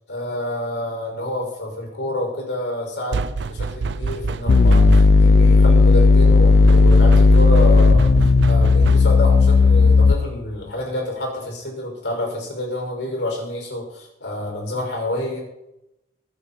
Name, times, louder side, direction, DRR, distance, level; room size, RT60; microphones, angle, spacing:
voice 1, 0.1-8.1 8.4-15.4, left 1 dB, 75° left, 0 dB, 6.0 m, -28 dB
sound 1, 3.1-5.4 6.6-9.3, right 4 dB, 70° right, 0.5 m, -27 dB
sound 2, 4.5-10.5, left 4 dB, 60° left, 0.5 m, -13 dB
24.0 x 9.0 x 4.4 m, 0.88 s
head